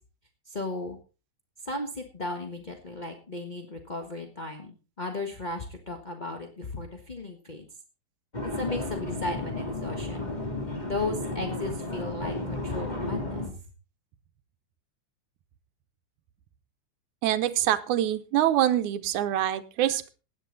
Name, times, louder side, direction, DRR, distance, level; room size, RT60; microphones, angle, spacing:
voice 1, 0.5-1.0 1.6-7.7 8.4-10.3 10.8-13.5, left 2 dB, 30° left, 2 dB, 0.8 m, -35 dB
sound 1, 8.3-13.5, left 2 dB, 15° left, 2.5 m, -33 dB
voice 2, 17.2-20.1, right 12 dB, 90° right, 11 dB, 2.3 m, -25 dB
17.0 x 10.5 x 4.0 m, 0.34 s
omnidirectional pair, 3.3 m